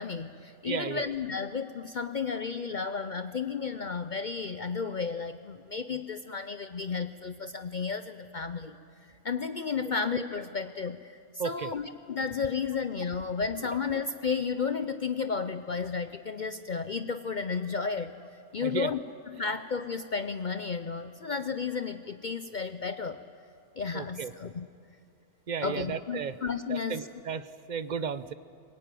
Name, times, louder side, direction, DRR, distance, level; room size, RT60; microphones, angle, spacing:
voice 1, 0.0-8.8 9.2-11.1 11.4-18.1 18.5-23.2 23.8-24.7 25.6-27.0, left 5 dB, 45° left, 10 dB, 0.7 m, -33 dB
voice 2, 0.6-1.1 11.4-11.7 18.6-18.9 23.9-24.3 25.5-26.3 26.7-28.3, right 7 dB, 45° right, 13 dB, 0.8 m, -34 dB
23.0 x 20.5 x 9.2 m, 2.4 s
omnidirectional pair, 1.3 m